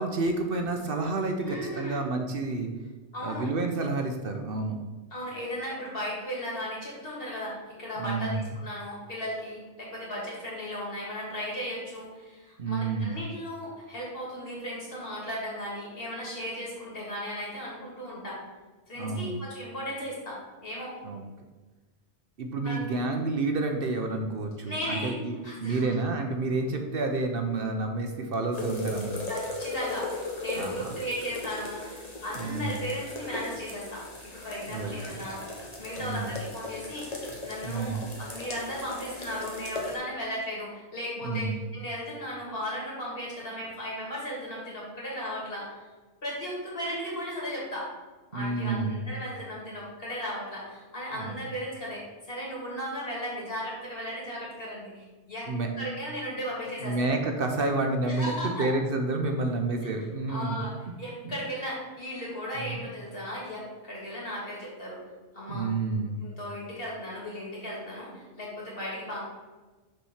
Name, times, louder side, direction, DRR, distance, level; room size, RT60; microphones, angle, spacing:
voice 1, 0.0-2.7 3.2-4.8 8.0-8.4 12.6-13.2 18.9-19.3 21.0-21.2 22.4-29.2 30.5-30.9 32.4-32.7 34.6-35.2 36.0-36.3 37.6-38.1 41.2-41.6 48.3-49.1 51.1-51.3 55.5-55.7 56.8-60.7 61.2-61.4 62.5-62.9 65.5-66.2, right 3 dB, 60° right, 4 dB, 0.9 m, -29 dB
voice 2, 1.4-2.0 3.1-3.5 5.1-18.4 18.9-20.9 22.6-23.0 24.6-25.1 25.4-25.9 29.3-35.4 35.8-45.7 46.2-47.9 48.3-55.5 55.7-57.1 58.1-58.7 60.3-60.7 61.0-65.0 65.3-65.7 66.2-69.2, equal, 55° left, -5 dB, 2.9 m, -36 dB
sound 1, 28.5-40.0, left 2 dB, 35° left, 1.4 m, -38 dB
6.5 x 4.2 x 6.3 m, 1.2 s
omnidirectional pair, 1.1 m